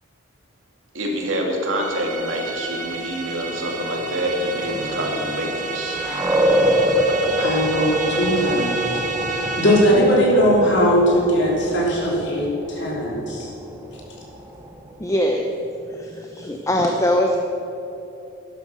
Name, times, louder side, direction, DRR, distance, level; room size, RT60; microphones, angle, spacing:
voice 1, 0.9-6.0, equal, 80° right, 0 dB, 2.6 m, -26 dB
sound 1, 1.8-10.2, right 3 dB, 40° right, 1.3 m, -30 dB
sound 2, 3.6-15.0, equal, 15° right, 1.1 m, -26 dB
voice 2, 7.4-8.8 9.3-13.5, equal, 60° left, -3 dB, 3.2 m, -19 dB
voice 3, 15.0-15.5 15.9-17.4, left 1 dB, 15° left, 2 dB, 0.7 m, -22 dB
12.0 x 11.0 x 6.3 m, 3.0 s
head